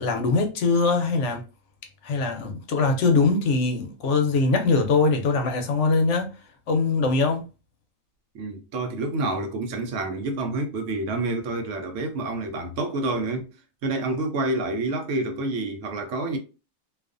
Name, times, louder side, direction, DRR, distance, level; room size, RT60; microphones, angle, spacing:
voice 1, 0.0-1.4 2.0-6.3 6.7-7.5, left 4 dB, 70° left, 0.8 m, -22 dB
voice 2, 8.3-13.5 13.8-16.4, right 2 dB, 70° right, 0.9 m, -28 dB
2.4 x 2.4 x 2.4 m
omnidirectional pair, 1.4 m